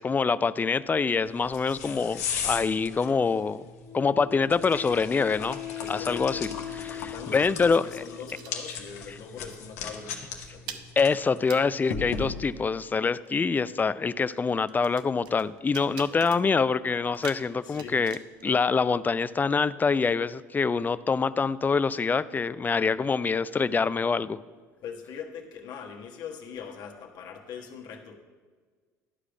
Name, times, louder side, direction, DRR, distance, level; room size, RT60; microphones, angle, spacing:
voice 1, 0.0-3.7 3.9-5.6 5.9-6.4 6.8-7.9 11.0-24.4, left 5 dB, 20° left, 16 dB, 0.4 m, -25 dB
sound 1, 1.3-12.7, left 6 dB, 75° left, 1.1 m, -38 dB
voice 2, 1.5-1.9 5.8-6.4 6.9-10.9 16.0-16.3 17.6-18.0 24.8-28.2, left 6 dB, 55° left, 2 dB, 1.4 m, -42 dB
Wind instrument woodwind instrument, 3.8-8.9, left 11 dB, 90° right, 1.9 m, -40 dB
sound 2, 6.6-9.2 9.5-9.8 10.0-19.4, right 8 dB, 65° right, 0.7 m, -49 dB
11.5 x 4.8 x 6.0 m, 1.5 s
hypercardioid pair, 65°, 8 cm